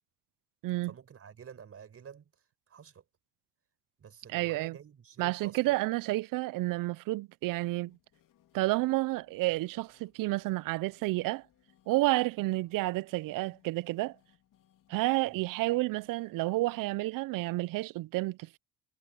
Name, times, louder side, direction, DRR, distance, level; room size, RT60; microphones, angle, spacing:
voice 1, 0.8-2.3 2.7-3.0 4.0-5.7 15.2-15.4, right 7 dB, 40° right, 4.9 m, -50 dB
voice 2, 4.3-4.8 5.2-8.0 8.5-11.4 11.9-14.2 14.9-18.6, right 19 dB, 65° right, 0.5 m, -30 dB
sound 1, 7.6-17.0, left 12 dB, 60° left, 3.5 m, -68 dB
cardioid pair, 115°, 36 cm